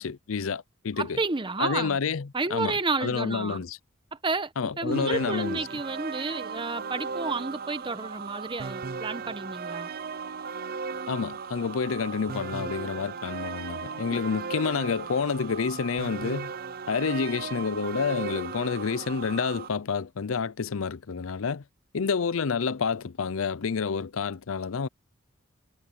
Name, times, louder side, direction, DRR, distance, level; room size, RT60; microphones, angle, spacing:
voice 1, 0.0-1.2 1.6-3.8 4.6-5.7 11.1-16.5 16.9-21.6 21.9-24.9, left 5 dB, 70° left, 0.5 m, -29 dB
voice 2, 1.0-2.0 2.3-3.6 4.1-9.9 14.1-14.2, right 3 dB, 25° right, 1.0 m, -31 dB
sound 1, 4.9-19.7, right 5 dB, 45° right, 0.6 m, -37 dB
head